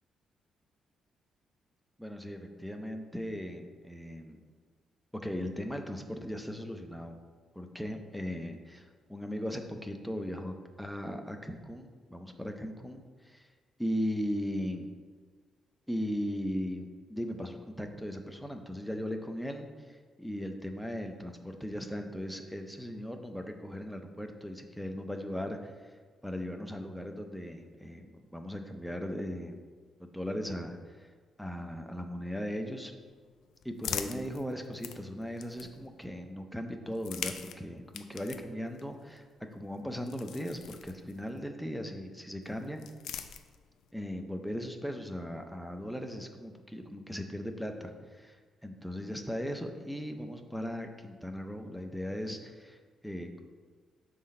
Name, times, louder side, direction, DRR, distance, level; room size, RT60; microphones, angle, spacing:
voice 1, 2.0-4.4 5.1-7.2 7.6-13.5 13.8-14.9 15.9-26.0 26.2-29.6 30.0-31.1 31.4-32.9 33.6-42.8 43.9-53.4, equal, ahead, 5 dB, 0.5 m, -38 dB
sound 1, 33.0-36.0 36.8-41.4 42.4-43.9, left 8 dB, 85° left, 0.3 m, -43 dB
6.1 x 3.9 x 4.2 m, 1.5 s
cardioid pair, 135°, 0 cm